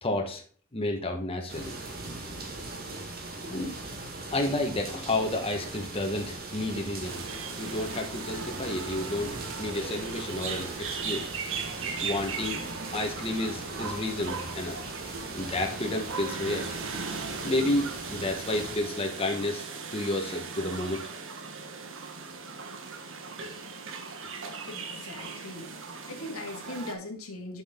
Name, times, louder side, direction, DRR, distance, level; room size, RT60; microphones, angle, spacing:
voice 1, 0.0-0.4 0.7-1.7 3.5-3.7 4.3-7.2 7.6-11.3 12.0-12.6 12.9-14.8 15.3-16.7 17.4-19.7 19.9-21.1, left 1 dB, 25° left, 3 dB, 1.2 m, -31 dB
sound 1, 1.5-18.8, right 2 dB, 45° right, 2.0 m, -40 dB
sound 2, 7.0-26.9, right 5 dB, 65° right, 1.4 m, -38 dB
voice 2, 24.7-25.7 26.1-27.6, left 2 dB, 80° left, 3 dB, 1.8 m, -39 dB
7.8 x 6.3 x 3.7 m, 0.43 s
head